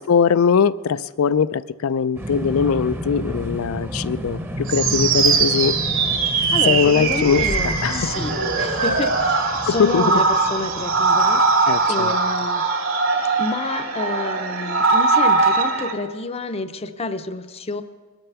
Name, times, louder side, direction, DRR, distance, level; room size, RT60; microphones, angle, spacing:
voice 1, 0.0-5.8 6.7-8.1 9.6-10.0 11.7-12.1, left 6 dB, 80° left, 16 dB, 0.4 m, -21 dB
sound 1, 2.2-12.2, equal, 10° right, 0.7 m, -33 dB
sound 2, 4.5-7.2, left 1 dB, 45° right, 1.1 m, -34 dB
sound 3, 4.7-15.9, right 4 dB, 75° right, 2.4 m, -20 dB
voice 2, 4.9-5.3 6.2-11.5 11.9-12.7 13.4-17.8, left 2 dB, 30° left, 9 dB, 0.6 m, -29 dB
21.0 x 9.0 x 6.9 m, 1.4 s
head